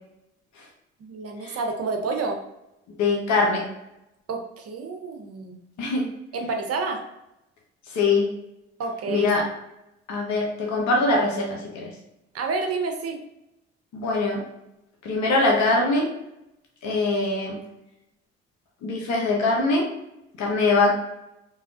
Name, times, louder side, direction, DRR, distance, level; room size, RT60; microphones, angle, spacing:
voice 1, 1.0-2.4 4.3-5.6 6.3-7.0 8.8-9.3 12.3-13.2, right 4 dB, 50° right, 4 dB, 0.7 m, -29 dB
voice 2, 3.0-3.7 5.8-6.1 7.9-8.3 9.1-9.4 10.1-11.9 13.9-14.4 15.0-16.1 16.8-17.6 18.8-19.9 20.4-20.9, left 3 dB, 65° left, -1 dB, 0.8 m, -22 dB
3.3 x 2.3 x 2.4 m, 0.87 s
hypercardioid pair, 55°, 31 cm